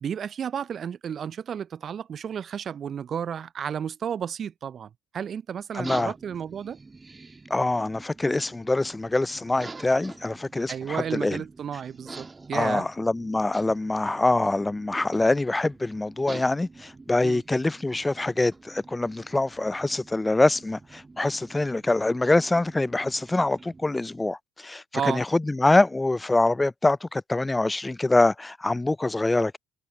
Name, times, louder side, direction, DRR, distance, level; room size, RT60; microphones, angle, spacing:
voice 1, 0.0-6.8 10.7-12.9 17.2-17.4 24.9-25.2, right 8 dB, 50° right, 0.4 m, -32 dB
voice 2, 5.7-6.1 7.5-11.4 12.5-29.6, left 2 dB, 15° left, 0.4 m, -24 dB
sound 1, 5.8-23.9, right 3 dB, 25° right, 2.1 m, -46 dB
hypercardioid pair, 50°, 0 cm